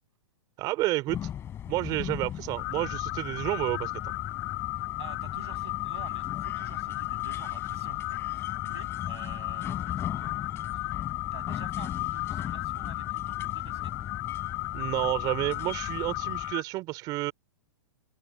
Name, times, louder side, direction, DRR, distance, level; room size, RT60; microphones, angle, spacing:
voice 1, 0.6-1.3 1.7-4.1 14.7-17.3, right 19 dB, 25° right, 4.3 m, -30 dB
sound 1, 1.1-16.5, left 10 dB, 15° left, 3.6 m, -39 dB
sound 2, 2.6-16.6, left 25 dB, 35° left, 2.0 m, -35 dB
voice 2, 5.0-10.3 11.3-13.9 15.9-16.1, right 10 dB, 65° right, 8.0 m, -49 dB
open air
hypercardioid pair, 165°, 15 cm